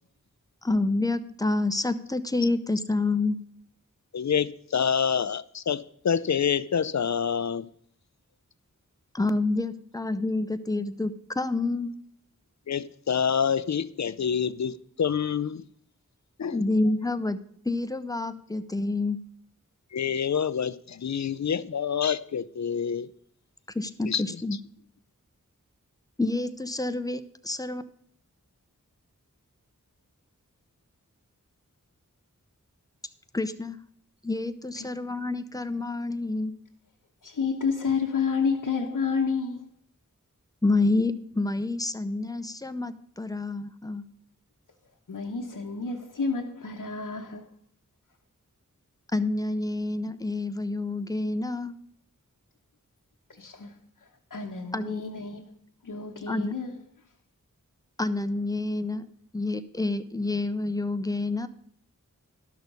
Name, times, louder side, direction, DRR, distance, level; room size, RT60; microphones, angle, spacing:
voice 1, 0.6-3.4 9.1-11.9 16.5-17.4 17.6-19.2 23.7-24.6 26.2-27.8 33.3-33.8 34.2-36.5 40.6-44.0 49.1-51.7 54.7-55.0 56.3-56.5 58.0-59.0 59.3-61.5, left 2 dB, 10° left, 0.6 m, -28 dB
voice 2, 4.1-7.7 12.7-15.6 16.4-16.6 19.9-23.1 24.1-24.2, left 7 dB, 60° left, 0.5 m, -27 dB
voice 3, 37.2-39.7 45.1-47.5 53.3-53.7 54.3-55.5 55.8-56.7, left 5 dB, 80° left, 1.0 m, -30 dB
12.0 x 6.3 x 5.2 m
wide cardioid pair, 55°, 32 cm